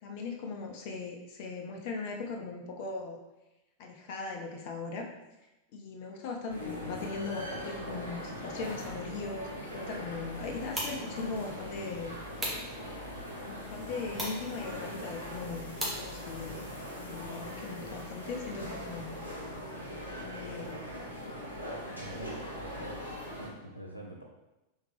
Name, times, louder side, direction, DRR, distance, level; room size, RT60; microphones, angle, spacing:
voice 1, 0.0-3.2 3.8-5.1 5.7-12.1 13.4-16.6 17.0-19.1 20.1-20.8, left 4 dB, 45° left, 1 dB, 0.5 m, -39 dB
sound 1, 6.5-23.5, equal, 90° right, 0.8 m, -41 dB
sound 2, 10.3-16.7, equal, 10° right, 1.2 m, -41 dB
voice 2, 22.0-23.1 23.4-24.2, right 1 dB, 90° left, -1 dB, 0.6 m, -46 dB
3.6 x 3.5 x 3.2 m, 0.99 s
figure-of-eight pair, 90°, 0 cm